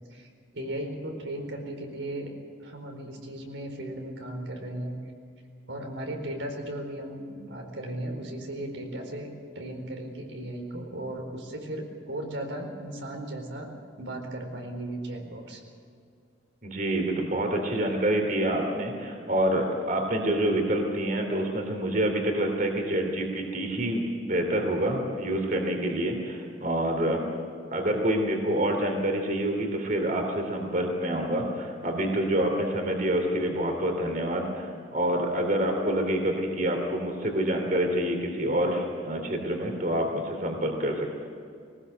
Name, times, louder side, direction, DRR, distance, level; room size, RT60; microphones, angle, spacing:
voice 1, 0.5-2.3 2.6-5.0 5.7-9.3 9.5-13.7 14.0-15.6, right 1 dB, 85° right, 2 dB, 4.4 m, -36 dB
voice 2, 16.6-27.2 27.7-41.1, right 1 dB, 45° right, 3 dB, 3.0 m, -27 dB
20.5 x 19.5 x 8.0 m, 2.3 s
head